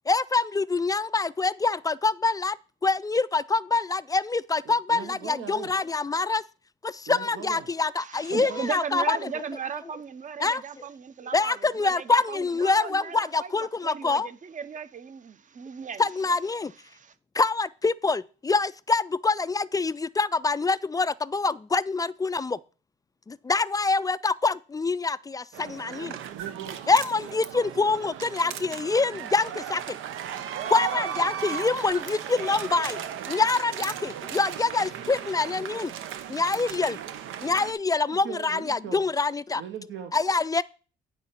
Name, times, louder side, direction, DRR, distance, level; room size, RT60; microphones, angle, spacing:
voice 1, 0.1-2.6 2.8-6.4 6.8-9.3 10.4-10.9 11.3-14.3 16.0-16.7 17.3-22.6 23.3-26.2 26.9-30.0 30.7-33.0 33.3-35.9 36.3-37.0 37.4-39.6 40.1-40.6, left 3 dB, 20° left, 0.3 m, -25 dB
voice 2, 4.6-5.7 7.1-7.7 8.3-8.6 26.0-26.8 38.1-39.0 39.5-40.1, right 9 dB, 70° right, 1.1 m, -40 dB
voice 3, 8.0-13.5 13.8-16.0 16.9-17.1, right 6 dB, 40° right, 0.8 m, -36 dB
sound 1, 25.5-37.7, right 9 dB, 90° right, 0.8 m, -36 dB
9.6 x 4.3 x 5.7 m
cardioid pair, 90°, 20 cm